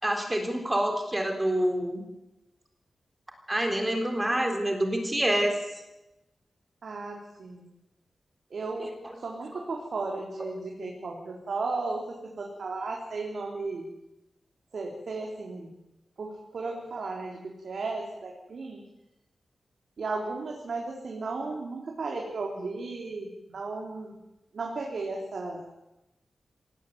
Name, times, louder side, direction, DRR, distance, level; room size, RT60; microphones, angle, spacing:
voice 1, 0.0-2.0 3.5-5.5 8.8-8.9, right 1 dB, 15° right, 4 dB, 3.8 m, -27 dB
voice 2, 6.8-7.7 8.5-8.9 9.2-13.9 14.7-15.7 16.2-18.8 20.0-24.2 24.5-25.7, right 3 dB, 60° right, 0 dB, 4.1 m, -35 dB
25.0 x 17.5 x 9.6 m, 0.97 s
wide cardioid pair, 155°, 0 cm